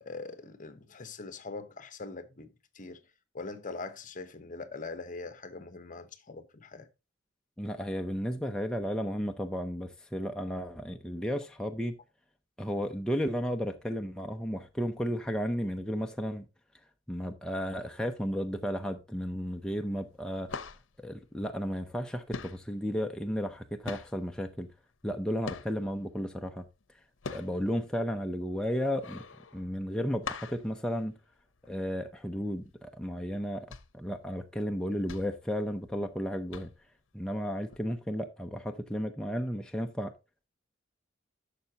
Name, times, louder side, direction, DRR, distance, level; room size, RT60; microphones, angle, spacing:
voice 1, 0.0-3.0 3.3-6.9, left 3 dB, 40° left, 1.0 m, -42 dB
voice 2, 7.6-12.0 12.6-16.4 17.1-20.5 21.0-24.7 25.0-26.6 27.3-29.2 29.5-31.2 31.7-33.7 33.9-36.7 37.1-40.1, equal, 5° left, 0.6 m, -33 dB
sound 1, 19.4-19.8 20.1-22.0 22.3-26.0 26.5-31.8 32.1-32.2 32.6-32.8 33.4-36.2 36.5-37.0 37.7-37.8, left 4 dB, 70° left, 0.8 m, -43 dB
11.5 x 6.7 x 2.8 m
head